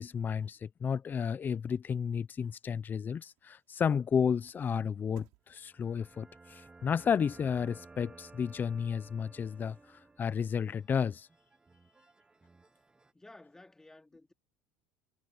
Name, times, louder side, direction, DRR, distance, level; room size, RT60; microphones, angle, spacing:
voice 1, 0.0-9.8 10.2-11.3, left 7 dB, 30° left, 0.7 m, -32 dB
sound 1, 2.2-8.7 9.1-9.2, right 28 dB, 75° right, 5.1 m, -69 dB
sound 2, 5.6-13.1, right 3 dB, 15° right, 1.3 m, -56 dB
voice 2, 13.1-14.3, left 2 dB, 10° left, 2.9 m, -54 dB
supercardioid pair, 105°, 6 cm